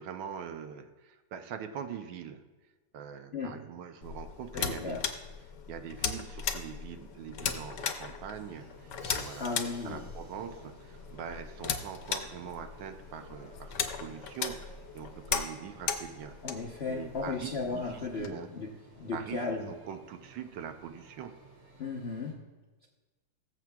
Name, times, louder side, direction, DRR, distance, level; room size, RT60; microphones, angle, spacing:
voice 1, 0.0-2.4 2.9-5.1 5.4-9.5 9.8-18.5 19.1-21.4, right 8 dB, 75° right, 7 dB, 1.3 m, -43 dB
sound 1, 4.0-18.3, left 7 dB, 65° left, 1.3 m, -38 dB
voice 2, 4.5-5.0 9.4-10.0 16.4-18.7 19.0-19.7 21.8-22.4, left 4 dB, 50° left, -2 dB, 0.7 m, -35 dB
sound 2, 8.3-22.3, right 3 dB, 55° right, 3.2 m, -57 dB
Crash cymbal, 9.0-10.9, left 2 dB, 5° right, 1.9 m, -52 dB
20.0 x 7.4 x 2.3 m, 1.2 s
omnidirectional pair, 2.1 m